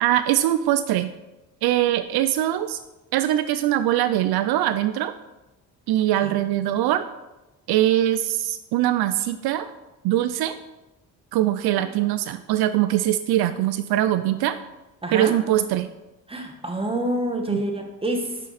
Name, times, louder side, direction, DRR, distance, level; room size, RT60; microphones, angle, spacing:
voice 1, 0.0-1.1 1.6-2.8 3.1-5.1 5.9-7.0 7.7-9.7 10.0-10.5 11.3-14.6 15.1-15.9 17.5-17.6, right 13 dB, 75° right, 12 dB, 0.5 m, -22 dB
voice 2, 15.0-15.3 16.3-18.4, right 1 dB, 15° right, 3 dB, 1.7 m, -27 dB
9.1 x 6.0 x 4.1 m, 1.0 s
supercardioid pair, 70°, 38 cm